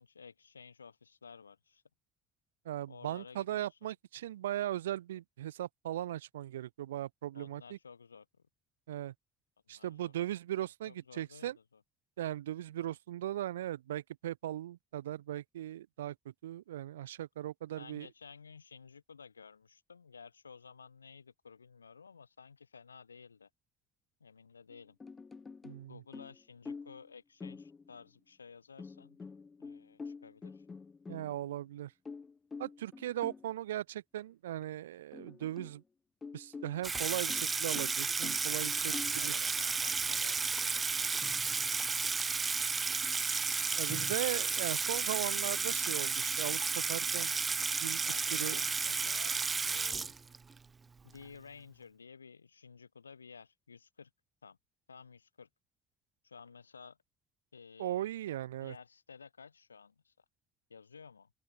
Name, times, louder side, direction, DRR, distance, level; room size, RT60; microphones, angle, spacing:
voice 1, 0.0-1.8 2.9-3.9 7.3-8.3 9.7-10.1 10.9-11.8 12.8-12.9 17.8-23.5 24.2-25.0 25.8-29.2 29.6-30.7 38.8-43.3 43.7-44.3 48.0-49.4 49.7-50.1 51.0-54.1 54.4-54.6 54.9-55.5 56.2-57.0 57.5-58.0 58.6-60.1 60.7-61.3, left 5 dB, 85° left, 5.3 m, -54 dB
voice 2, 2.7-7.8 8.9-9.1 9.7-11.6 12.2-16.1 16.4-18.1 25.6-26.0 31.1-31.9 32.6-35.8 36.3-38.9 39.2-39.3 43.8-47.3 47.8-48.0 48.3-48.6 57.8-58.7, right 13 dB, 80° right, 0.6 m, -38 dB
sound 1, 24.7-25.9 26.1-27.1 27.4-28.1 28.8-31.6 32.1-33.5 34.2-34.3 34.6-34.7 35.1-35.8 36.2-39.3 41.2-42.0 43.9-44.2, left 4 dB, 30° left, 2.1 m, -47 dB
Water tap faucet / Sink (filling or washing), 36.8-50.6, right 5 dB, 30° right, 0.8 m, -33 dB
open air
figure-of-eight pair, 50°, 0 cm